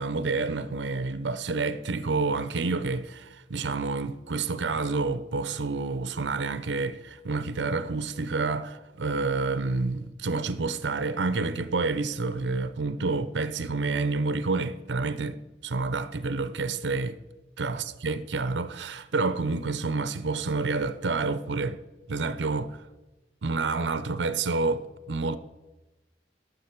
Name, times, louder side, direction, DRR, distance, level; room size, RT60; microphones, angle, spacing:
voice 1, 0.0-17.2 17.6-21.8 22.1-22.8 23.4-25.4, right 3 dB, 80° right, 0.6 m, -29 dB
11.5 x 7.3 x 6.0 m
head